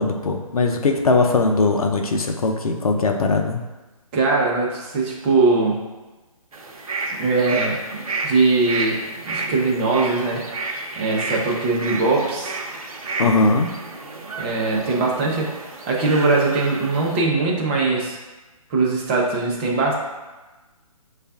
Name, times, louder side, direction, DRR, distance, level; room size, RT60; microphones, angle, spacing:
voice 1, 0.0-3.6 13.2-13.7, left 3 dB, 75° left, 3 dB, 0.6 m, -20 dB
voice 2, 4.1-5.8 7.1-7.8 8.2-9.0 9.2-10.5 11.0-12.5 14.4-15.5 15.9-18.2 18.7-19.9, right 3 dB, 20° right, -3 dB, 0.6 m, -21 dB
sound 1, 6.5-17.2, right 3 dB, 70° right, 0.7 m, -31 dB
6.3 x 2.4 x 2.3 m, 1.2 s
figure-of-eight pair, 145°, 19 cm